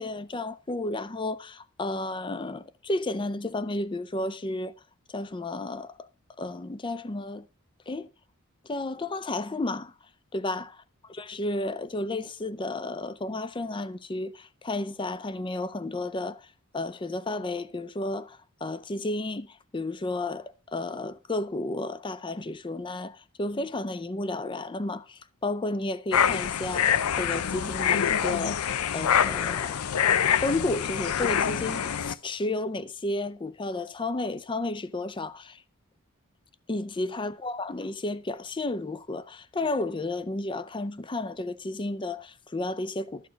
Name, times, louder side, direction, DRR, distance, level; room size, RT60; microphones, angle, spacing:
voice 1, 0.0-4.7 5.1-6.1 6.4-7.5 7.9-8.1 8.6-9.9 10.3-10.7 11.1-16.5 16.7-29.8 30.4-35.6 36.7-43.3, left 2 dB, 20° left, 0.5 m, -32 dB
sound 1, 26.1-32.1, left 8 dB, 85° left, 0.5 m, -25 dB
12.5 x 6.6 x 5.1 m
head